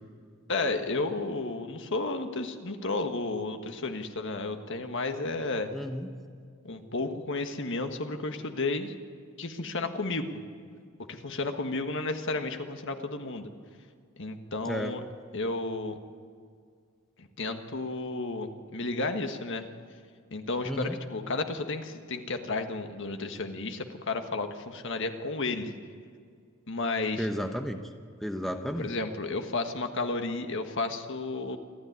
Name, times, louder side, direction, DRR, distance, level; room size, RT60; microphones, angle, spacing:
voice 1, 0.5-5.7 6.6-8.9 9.4-10.4 11.1-13.5 14.2-15.0 15.3-16.0 17.2-19.6 20.3-25.7 26.7-27.3 28.8-31.6, left 3 dB, 60° left, 6 dB, 1.6 m, -32 dB
voice 2, 5.7-6.1 14.7-14.9 20.7-21.0 27.2-27.8 28.2-28.9, equal, ahead, 5 dB, 1.0 m, -32 dB
27.5 x 13.0 x 9.5 m, 2.1 s
head